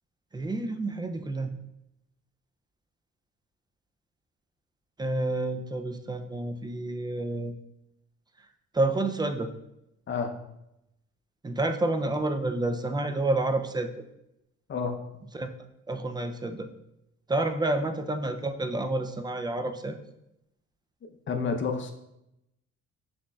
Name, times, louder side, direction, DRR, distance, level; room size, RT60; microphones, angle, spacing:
voice 1, 0.3-1.6 5.0-7.5 8.7-9.5 11.4-13.9 15.3-15.5 15.9-16.7 17.3-20.0, right 2 dB, 15° right, 7 dB, 0.3 m, -29 dB
voice 2, 21.3-21.9, left 5 dB, 40° left, 5 dB, 0.6 m, -29 dB
6.1 x 3.0 x 2.3 m, 0.84 s
cardioid pair, 90°, 30 cm